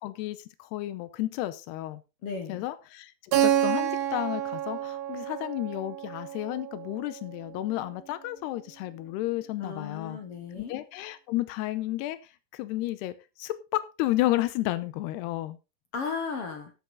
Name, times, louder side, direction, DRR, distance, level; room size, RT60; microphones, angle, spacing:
voice 1, 0.0-2.0 2.5-3.1 3.4-10.2 10.6-12.2 12.5-15.6, left 16 dB, 90° left, 14 dB, 2.8 m, -32 dB
voice 2, 2.2-2.6 9.6-10.8 15.9-16.7, left 5 dB, 55° left, 6 dB, 1.6 m, -35 dB
Keyboard (musical), 3.3-7.9, right 11 dB, 90° right, 3.9 m, -29 dB
14.5 x 8.2 x 3.8 m, 0.28 s
omnidirectional pair, 4.7 m